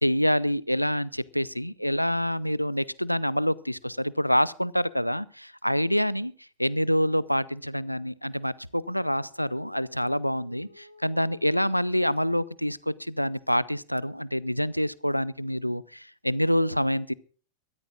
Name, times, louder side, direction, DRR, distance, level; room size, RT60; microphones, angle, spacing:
voice 1, 0.0-6.3 6.6-17.1, equal, 90° left, 21 dB, 0.5 m, -26 dB
Dog, 7.9-11.4, equal, 90° right, 2.3 m, -56 dB
23.0 x 13.0 x 2.5 m, 0.41 s
figure-of-eight pair, 90°, 0 cm